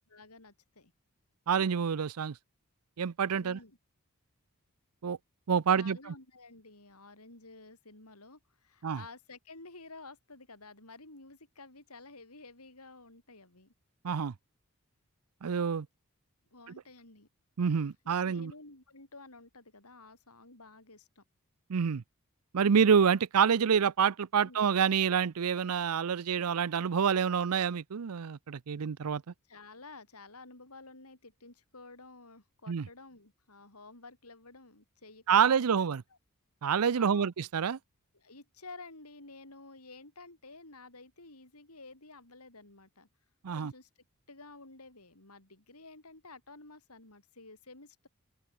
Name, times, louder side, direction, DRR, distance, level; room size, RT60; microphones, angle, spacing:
voice 1, 0.1-0.9 3.4-3.8 5.7-13.7 16.5-17.3 18.0-21.2 24.4-24.6 29.5-35.8 36.9-37.3 38.1-43.1 43.5-43.9 44.3-48.1, left 3 dB, 90° left, 7.1 m, -52 dB
voice 2, 1.5-2.3 3.0-3.6 5.0-5.2 5.5-6.1 8.8-9.0 14.0-14.3 15.4-15.9 17.6-18.5 21.7-22.0 22.5-29.2 32.7-32.9 35.3-36.0 36.6-37.8 43.4-43.7, right 7 dB, 85° right, 0.5 m, -27 dB
open air
head